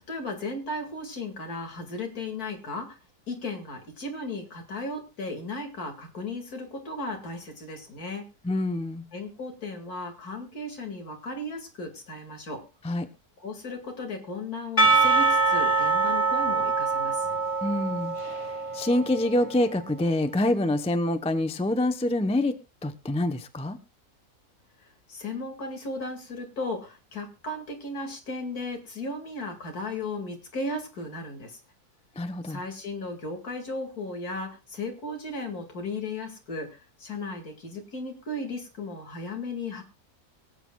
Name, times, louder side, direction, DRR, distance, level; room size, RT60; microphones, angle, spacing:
voice 1, 0.1-3.0 3.3-8.3 9.1-12.6 13.4-17.3 24.8-31.6 32.4-39.8, left 2 dB, 70° left, 4 dB, 2.7 m, -35 dB
voice 2, 8.4-9.1 12.8-13.1 17.6-22.6 22.8-23.8 32.2-32.6, left 1 dB, 5° left, 9 dB, 0.5 m, -26 dB
Percussion / Church bell, 14.8-19.6, right 3 dB, 25° left, 1.0 m, -24 dB
24.0 x 8.3 x 2.3 m, 0.29 s
omnidirectional pair, 1.6 m